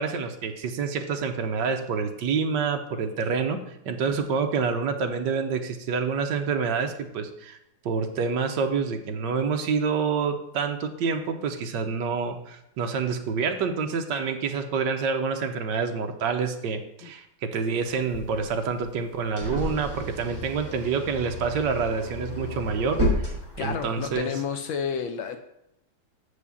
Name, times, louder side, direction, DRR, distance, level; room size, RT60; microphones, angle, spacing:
voice 1, 0.0-7.6 7.8-24.3, right 5 dB, 65° right, 6 dB, 1.3 m, -27 dB
sound 1, 17.9-24.1, equal, 10° left, 3.6 m, -32 dB
voice 2, 23.6-25.4, left 6 dB, 75° left, 7 dB, 1.4 m, -30 dB
7.2 x 4.9 x 6.9 m, 0.83 s
omnidirectional pair, 2.3 m